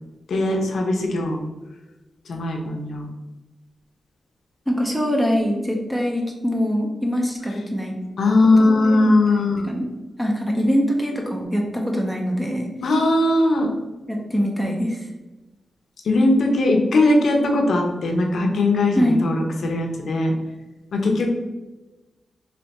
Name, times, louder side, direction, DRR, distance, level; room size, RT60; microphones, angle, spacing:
voice 1, 0.3-1.4 2.3-3.1 8.2-9.7 12.8-13.7 16.0-20.3 20.9-21.3, left 2 dB, 70° left, 1 dB, 0.8 m, -19 dB
voice 2, 4.7-8.0 8.6-9.0 9.4-9.9 10.2-12.7 14.1-15.1 19.0-19.2, equal, 5° right, 0 dB, 0.6 m, -23 dB
3.4 x 3.3 x 4.1 m, 1.1 s
wide cardioid pair, 165°, 0 cm